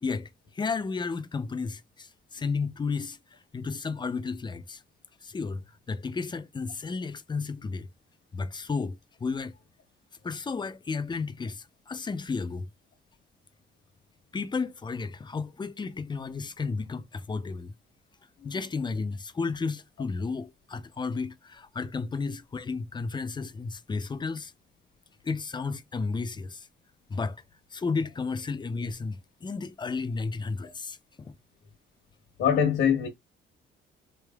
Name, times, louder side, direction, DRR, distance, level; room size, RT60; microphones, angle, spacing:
voice 1, 0.0-3.2 3.5-4.8 5.2-7.9 8.3-9.5 10.2-12.7 14.3-17.7 18.4-24.5 25.2-26.7 27.1-27.4 27.7-31.3, left 4 dB, 20° left, 0.5 m, -33 dB
voice 2, 32.4-33.1, left 8 dB, 75° left, 1.2 m, -24 dB
4.0 x 3.3 x 2.3 m
cardioid pair, 90°, 20 cm